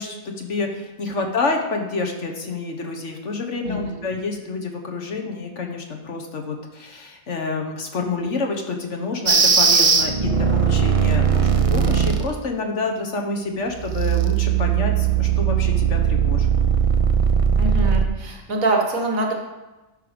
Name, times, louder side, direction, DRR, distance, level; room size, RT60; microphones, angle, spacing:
voice 1, 0.0-16.5, left 3 dB, 60° left, 3 dB, 1.5 m, -28 dB
sound 1, 9.3-12.3 13.8-18.0, right 7 dB, 40° right, 0.5 m, -19 dB
voice 2, 17.6-19.3, right 2 dB, 75° right, 2 dB, 1.8 m, -24 dB
12.0 x 5.6 x 5.1 m, 1.1 s
omnidirectional pair, 1.4 m